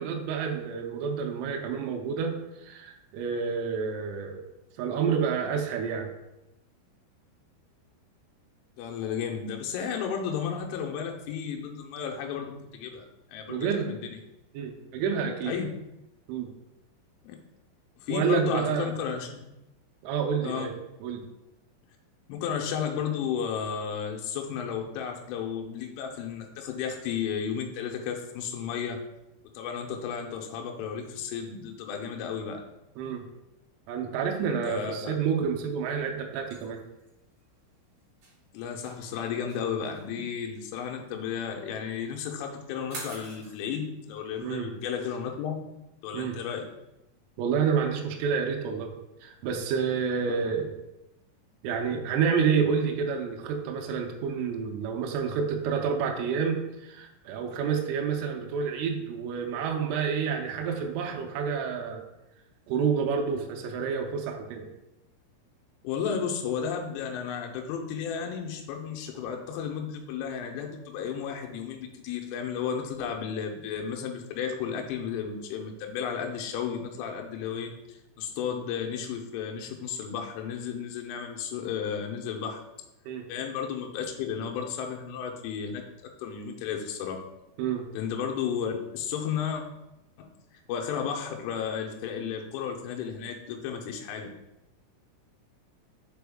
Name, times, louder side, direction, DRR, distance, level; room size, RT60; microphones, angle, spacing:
voice 1, 0.0-2.4 2.6-4.4 4.8-6.1 13.5-14.0 14.5-15.6 16.3-16.5 18.1-19.0 20.0-20.7 21.0-21.3 33.0-33.2 33.9-36.8 44.4-44.7 46.1-46.4 47.4-48.9 49.2-50.7 51.6-62.0 62.7-64.7 83.1-83.3 87.6-87.9, right 6 dB, 85° right, 2 dB, 3.2 m, -29 dB
voice 2, 8.8-14.2 15.4-15.7 17.2-17.4 18.0-19.4 20.4-20.7 22.3-29.0 29.5-32.6 34.6-35.2 38.5-45.6 46.0-46.7 50.3-50.4 65.8-82.6 83.3-85.8 86.2-87.2 87.9-89.6 90.2-94.3, left 7 dB, 85° left, 2 dB, 3.2 m, -33 dB
sound 1, 36.5-43.6, right 2 dB, 50° right, 2.1 m, -46 dB
6.8 x 4.3 x 3.5 m, 0.91 s
omnidirectional pair, 5.9 m